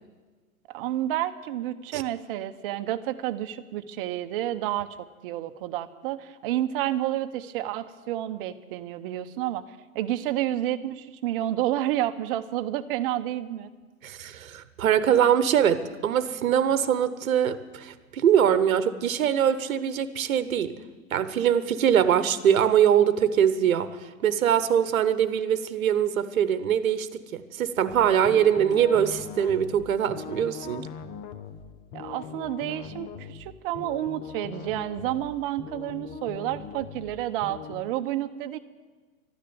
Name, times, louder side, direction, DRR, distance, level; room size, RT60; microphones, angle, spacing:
voice 1, 0.7-4.9 5.2-9.6 9.9-13.7 31.9-38.6, right 13 dB, 40° right, 10 dB, 0.9 m, -30 dB
voice 2, 14.0-20.7 21.1-23.9 24.2-30.9, right 9 dB, 65° right, 14 dB, 1.1 m, -23 dB
sound 1, 27.9-37.8, left 7 dB, 20° left, 0.6 m, -41 dB
13.0 x 10.0 x 9.4 m, 1.4 s
hypercardioid pair, 115°, 43 cm